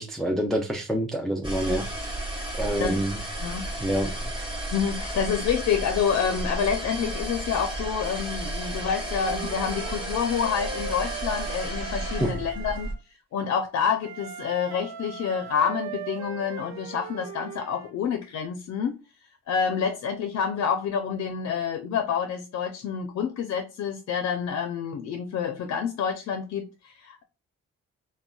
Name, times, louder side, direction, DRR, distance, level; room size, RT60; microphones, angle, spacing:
voice 1, 0.0-2.1 2.5-3.2 3.8-4.3 12.2-12.3, equal, ahead, 0.4 m, -27 dB
sound 1, 1.4-12.9, right 1 dB, 15° right, 1.1 m, -33 dB
voice 2, 4.7-12.9 13.3-19.0 19.5-27.2, left 7 dB, 65° left, 0.5 m, -28 dB
Wind instrument woodwind instrument, 8.8-13.0 14.0-17.9, right 6 dB, 70° right, 0.5 m, -39 dB
3.6 x 2.2 x 2.3 m
cardioid pair, 75°, 29 cm